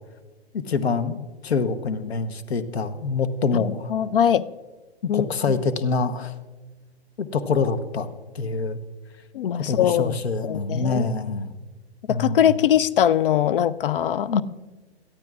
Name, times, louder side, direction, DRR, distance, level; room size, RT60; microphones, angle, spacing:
voice 1, 0.5-3.9 5.0-6.3 7.2-8.1 8.3-8.8 9.6-11.5 12.1-12.5 14.3-14.4, left 4 dB, 70° left, 1.1 m, -25 dB
voice 2, 3.9-4.5 5.1-5.3 9.3-10.2 10.4-11.1 12.1-14.4, left 10 dB, 55° left, 0.5 m, -21 dB
21.5 x 14.0 x 2.4 m
hypercardioid pair, 125°, 33 cm